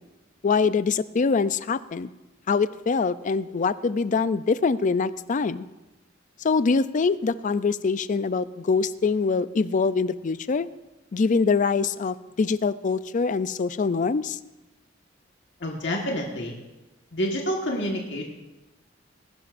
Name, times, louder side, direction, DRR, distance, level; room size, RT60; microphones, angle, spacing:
voice 1, 0.4-2.1 2.5-5.7 6.4-10.7 11.1-14.4, left 4 dB, 40° left, 15 dB, 0.4 m, -24 dB
voice 2, 15.6-16.5 17.1-18.2, equal, 65° left, 0 dB, 1.5 m, -28 dB
20.5 x 12.0 x 2.5 m, 1.1 s
head